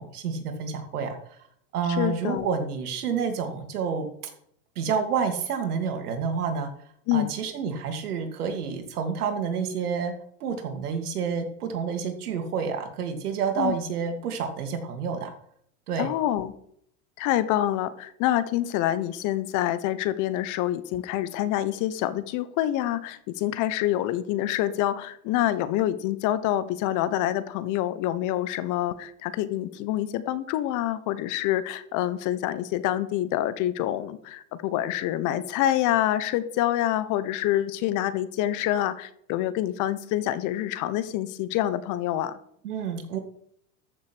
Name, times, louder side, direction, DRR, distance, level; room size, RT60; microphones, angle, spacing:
voice 1, 0.0-1.4 1.7-4.3 4.8-6.7 7.1-10.1 10.4-15.3 15.9-16.1 42.6-43.2, right 6 dB, 90° right, 6 dB, 2.6 m, -29 dB
voice 2, 1.9-2.6 7.1-7.3 13.6-13.8 16.0-16.5 17.2-42.4, left 13 dB, 45° left, 14 dB, 1.2 m, -26 dB
14.0 x 6.7 x 6.3 m, 0.67 s
supercardioid pair, 130°, 44 cm